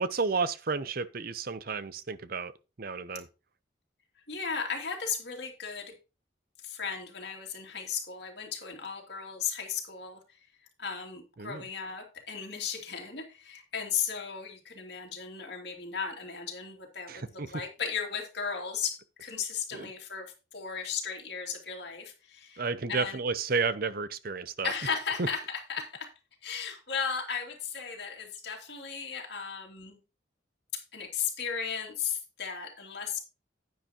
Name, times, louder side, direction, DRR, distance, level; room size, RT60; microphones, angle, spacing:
voice 1, 0.0-2.5 2.8-3.3 11.4-11.6 17.1-17.5 19.7-19.9 22.6-24.7, right 4 dB, 50° right, 0.6 m, -32 dB
voice 2, 4.3-5.9 6.6-10.4 10.8-23.2 24.6-26.1 26.4-30.0 30.7-33.2, left 6 dB, 60° left, 2.6 m, -36 dB
10.0 x 9.4 x 2.9 m
head